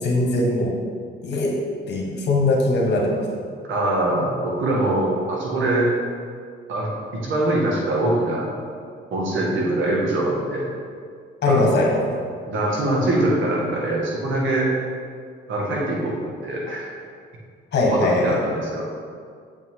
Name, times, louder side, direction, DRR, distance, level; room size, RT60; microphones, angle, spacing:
voice 1, 0.0-0.8 1.2-1.6 1.9-3.2 11.4-12.0 17.7-18.4, left 2 dB, 60° left, -1 dB, 1.5 m, -20 dB
voice 2, 3.7-5.9 6.7-8.5 9.1-10.7 11.5-12.0 12.5-14.7 15.5-16.2 16.4-16.9 17.8-18.9, right 1 dB, 75° right, -3 dB, 1.9 m, -23 dB
7.3 x 5.6 x 3.7 m, 2.1 s
cardioid pair, 90°, 20 cm